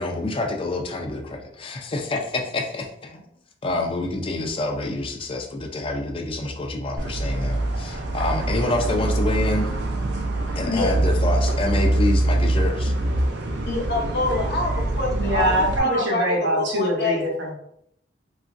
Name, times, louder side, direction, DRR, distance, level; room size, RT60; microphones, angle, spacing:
voice 1, 0.0-3.2 3.6-9.7 10.6-13.0, left 2 dB, 30° left, 2 dB, 0.4 m, -27 dB
sound 1, 7.0-15.8, right 1 dB, 65° right, 0.5 m, -24 dB
voice 2, 13.6-15.5 15.8-17.2, left 2 dB, 60° left, 0 dB, 0.7 m, -26 dB
voice 3, 15.1-17.5, right 1 dB, 85° right, -1 dB, 0.8 m, -23 dB
2.9 x 2.4 x 2.5 m, 0.73 s
head